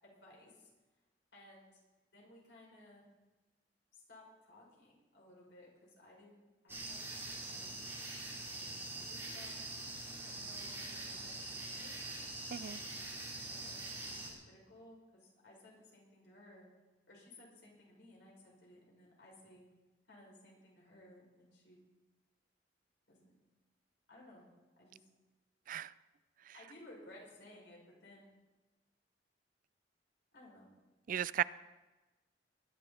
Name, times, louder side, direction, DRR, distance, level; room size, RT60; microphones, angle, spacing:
voice 1, 0.0-0.7 1.3-1.8 2.1-3.0 3.9-7.8 9.0-9.5 10.2-12.0 12.6-13.0 13.5-16.7 17.1-19.7 20.1-21.8 23.1-23.3 24.1-24.5 24.8-25.1 26.5-28.3 30.3-30.7, left 1 dB, 75° left, -3 dB, 6.4 m, -59 dB
sound 1, 6.7-14.3, right 2 dB, 15° right, 3.8 m, -44 dB
voice 2, 31.1-31.4, right 10 dB, 50° right, 19 dB, 0.4 m, -35 dB
20.5 x 11.5 x 4.3 m, 1.1 s
head